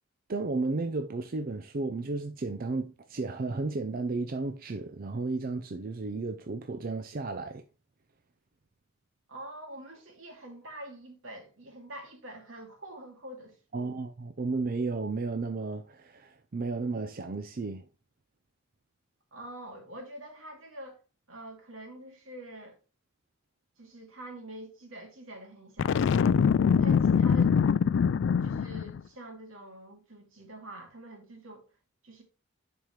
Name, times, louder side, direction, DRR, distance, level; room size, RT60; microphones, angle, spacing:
voice 1, 0.3-7.6 13.7-17.9, right 3 dB, 45° right, 0.5 m, -33 dB
voice 2, 9.3-14.1 19.3-21.0 21.3-22.8 23.8-26.4 26.7-27.6 28.4-31.6 32.0-32.2, right 1 dB, 75° right, 2.5 m, -46 dB
Boom, 25.8-29.0, left 6 dB, 65° left, 0.3 m, -23 dB
10.5 x 4.7 x 3.2 m
head